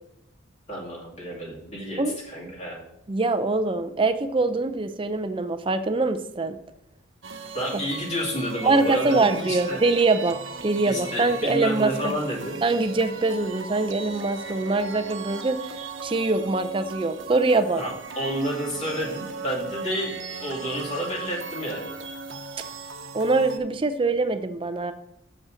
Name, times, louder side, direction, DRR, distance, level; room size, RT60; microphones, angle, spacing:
voice 1, 0.7-2.8 7.5-9.8 10.9-12.6 17.8-21.9, equal, 35° left, -4 dB, 2.6 m, -30 dB
voice 2, 3.1-6.6 8.6-10.4 10.6-12.1 12.6-17.8 23.1-24.9, right 3 dB, 25° right, 9 dB, 0.4 m, -23 dB
sound 1, 7.2-23.6, right 4 dB, 70° right, 0.9 m, -37 dB
7.0 x 5.4 x 6.2 m, 0.79 s
head